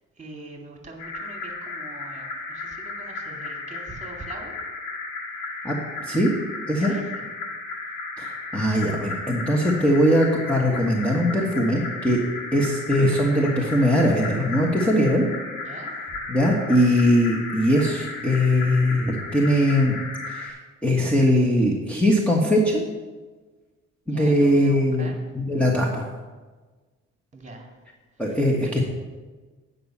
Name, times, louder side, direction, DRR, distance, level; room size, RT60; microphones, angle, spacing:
voice 1, 0.2-4.6 6.8-7.2 15.6-15.9 24.1-25.2 27.3-27.7 28.6-28.7, right 2 dB, 25° right, 1 dB, 2.3 m, -42 dB
sound 1, 1.0-20.5, left 3 dB, 85° left, 2.0 m, -35 dB
voice 2, 5.6-6.3 6.7-6.9 8.2-12.2 12.5-15.2 16.3-20.0 20.3-20.6 20.8-22.8 24.1-25.1 25.3-26.0 28.2-28.8, equal, 5° left, -4 dB, 1.5 m, -21 dB
9.2 x 5.5 x 7.2 m, 1.3 s
cardioid pair, 90°, 30 cm